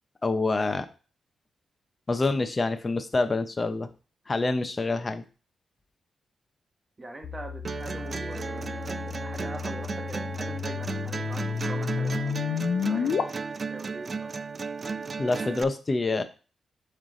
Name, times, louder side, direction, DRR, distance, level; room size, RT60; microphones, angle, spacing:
voice 1, 0.2-0.9 2.1-3.9 4.3-5.2 15.2-16.2, left 3 dB, 35° left, 9 dB, 0.9 m, -26 dB
voice 2, 7.0-13.2 13.7-14.3, right 2 dB, 25° right, 3 dB, 1.3 m, -42 dB
sound 1, 7.2-13.2, left 6 dB, 70° left, 0.7 m, -31 dB
sound 2, 7.6-15.6, right 5 dB, 45° right, 0.3 m, -34 dB
7.2 x 3.3 x 4.0 m, 0.35 s
cardioid pair, 70°, 0 cm